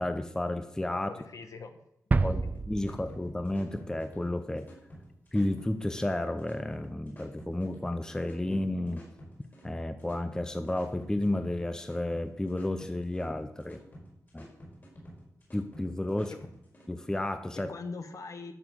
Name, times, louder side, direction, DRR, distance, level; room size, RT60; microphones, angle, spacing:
voice 1, 0.0-1.1 2.2-2.4 2.7-4.7 5.3-9.0 9.6-13.8 14.3-14.5 15.5-16.4 16.9-17.7, left 1 dB, 10° left, 9 dB, 0.7 m, -32 dB
voice 2, 1.1-1.8 2.1-2.5 2.9-3.0 16.3-16.4 17.7-18.5, left 4 dB, 60° left, 8 dB, 1.3 m, -42 dB
sound 1, 2.1-3.9 4.2-4.3, right 3 dB, 25° right, 0.4 m, -30 dB
sound 2, 2.4-16.9, equal, 35° left, 4.9 m, -50 dB
12.5 x 7.2 x 6.2 m, 0.79 s
wide cardioid pair, 130°, 6 cm